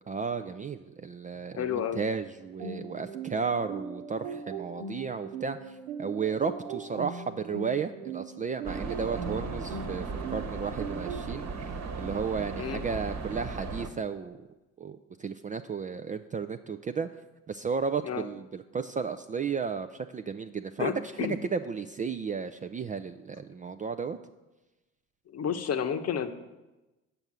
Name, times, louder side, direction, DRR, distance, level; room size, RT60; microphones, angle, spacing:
voice 1, 0.1-11.5 12.0-14.5 14.8-17.1 17.5-21.1 21.4-24.2, right 5 dB, 20° right, 8 dB, 0.4 m, -33 dB
voice 2, 1.5-2.0 12.6-12.8 18.0-18.2 20.8-21.4 25.3-26.3, left 8 dB, 40° left, 9 dB, 0.9 m, -31 dB
sound 1, 2.6-11.3, right 5 dB, 80° right, 1.2 m, -40 dB
sound 2, 8.6-13.9, right 4 dB, 45° right, 1.3 m, -36 dB
7.8 x 5.5 x 7.3 m, 1.1 s
hypercardioid pair, 60°, 38 cm